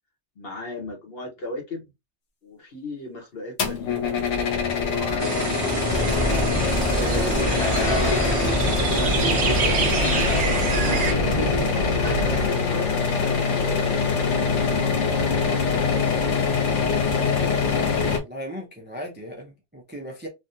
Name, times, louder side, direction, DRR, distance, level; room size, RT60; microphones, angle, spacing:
voice 1, 0.3-1.9 2.4-4.0 4.4-5.5 6.0-10.0 10.3-11.3 12.2-16.2, left 1 dB, 55° left, 1.3 m, -37 dB
sound 1, 3.6-18.2, left 5 dB, 80° left, 1.2 m, -24 dB
sound 2, 5.2-11.1, right 5 dB, 60° right, 0.9 m, -27 dB
sound 3, 5.9-12.5, equal, 30° left, 1.0 m, -26 dB
voice 2, 18.1-20.3, equal, 15° right, 0.4 m, -37 dB
3.4 x 2.3 x 2.6 m
omnidirectional pair, 1.2 m